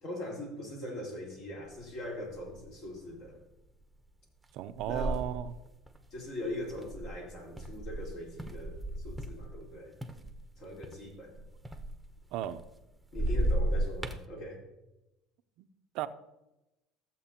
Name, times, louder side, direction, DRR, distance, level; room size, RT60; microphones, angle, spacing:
voice 1, 0.0-3.4 4.8-5.3 6.1-9.9 10.6-11.4 13.1-14.6, left 1 dB, 65° left, -2 dB, 3.9 m, -41 dB
sound 1, 1.8-1.9 2.3-2.8 3.3-3.5 4.4-9.7 10.0-12.8 13.1-14.2, right 1 dB, 5° right, 0.8 m, -35 dB
voice 2, 4.5-5.5 12.3-12.6 15.6-15.7 15.9-16.1, right 11 dB, 70° right, 11 dB, 0.5 m, -34 dB
14.5 x 7.5 x 2.9 m, 0.96 s
supercardioid pair, 105°, 0 cm